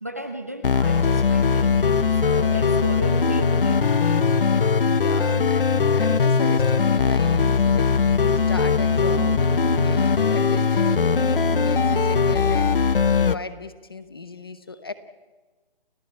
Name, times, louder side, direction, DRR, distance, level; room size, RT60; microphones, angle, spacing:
voice 1, 0.0-1.8 2.1-4.5, right 1 dB, 15° right, 7 dB, 0.6 m, -36 dB
sound 1, 0.6-13.3, left 5 dB, 65° left, 1.0 m, -20 dB
sound 2, 1.7-12.6, right 6 dB, 80° right, 1.3 m, -38 dB
voice 2, 4.8-14.9, left 3 dB, 25° left, 12 dB, 0.8 m, -37 dB
30.0 x 14.0 x 8.6 m, 1.2 s
hypercardioid pair, 180°, 29 cm